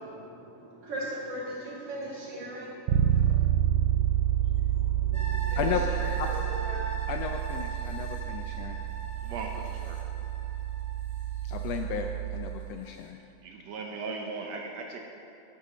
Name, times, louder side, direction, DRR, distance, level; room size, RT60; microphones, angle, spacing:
voice 1, 0.0-6.9, right 1 dB, 55° right, -6 dB, 3.3 m, -40 dB
Bass guitar, 2.9-12.7, right 11 dB, 85° right, 2.0 m, -29 dB
sound 1, 5.1-12.4 12.8-12.9, right 2 dB, 10° left, 2.5 m, -41 dB
voice 2, 5.6-5.9 6.2-6.3 7.1-8.8 11.4-13.2, left 8 dB, 80° left, 4 dB, 1.5 m, -34 dB
voice 3, 9.2-10.0 13.4-15.0, right 4 dB, 70° right, 1 dB, 1.9 m, -38 dB
9.7 x 8.4 x 6.0 m, 2.7 s
omnidirectional pair, 3.3 m